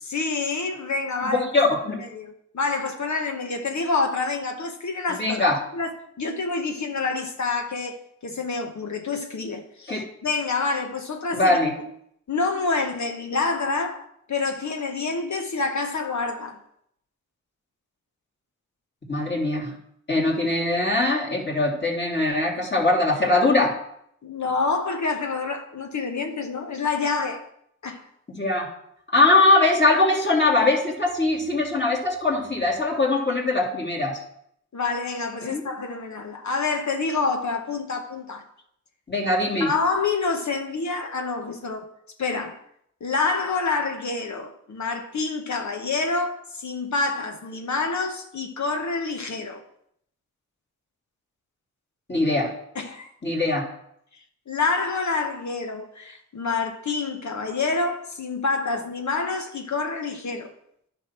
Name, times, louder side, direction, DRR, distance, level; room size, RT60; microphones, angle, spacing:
voice 1, 0.0-1.5 2.0-5.4 5.7-11.6 12.3-16.6 24.2-27.4 27.8-28.1 34.7-38.4 39.6-41.8 42.2-42.6 43.0-49.6 52.7-53.1 54.1-60.5, left 4 dB, 60° left, 1.1 m, -27 dB
voice 2, 1.2-2.0 5.2-5.6 9.9-10.0 11.3-11.7 19.1-19.7 20.1-23.8 28.3-28.7 29.1-34.2 35.4-35.6 39.1-39.7 52.1-52.5 53.2-53.6, left 2 dB, 35° left, 3.1 m, -21 dB
10.0 x 4.6 x 6.0 m
cardioid pair, 40°, 32 cm